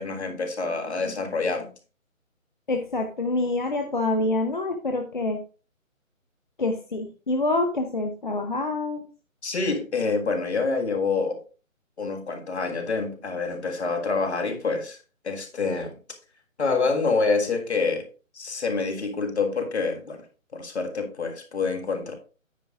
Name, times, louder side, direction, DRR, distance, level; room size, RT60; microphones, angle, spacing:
voice 1, 0.0-1.7 9.4-11.4 12.0-15.0 15.2-16.0 16.6-18.1 18.3-20.2 20.5-22.1, left 4 dB, 50° left, 5 dB, 1.8 m, -27 dB
voice 2, 2.7-5.4 6.6-9.1, left 2 dB, 35° left, 4 dB, 0.7 m, -26 dB
9.2 x 9.2 x 2.4 m, 0.36 s
figure-of-eight pair, 150°, 41 cm